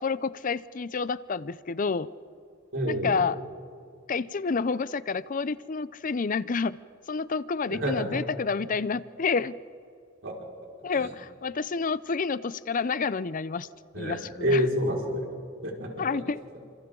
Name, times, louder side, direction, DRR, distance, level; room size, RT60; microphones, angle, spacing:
voice 1, 0.0-2.1 2.8-3.4 4.1-6.8 7.1-9.6 10.8-13.7 14.0-14.6 16.0-16.4, left 5 dB, 40° left, 17 dB, 0.5 m, -29 dB
voice 2, 2.7-3.2 7.7-8.2 10.2-10.4 11.0-11.1 13.9-15.3 15.6-16.1, equal, 65° right, -3 dB, 5.2 m, -28 dB
29.5 x 27.0 x 3.9 m, 2.3 s
head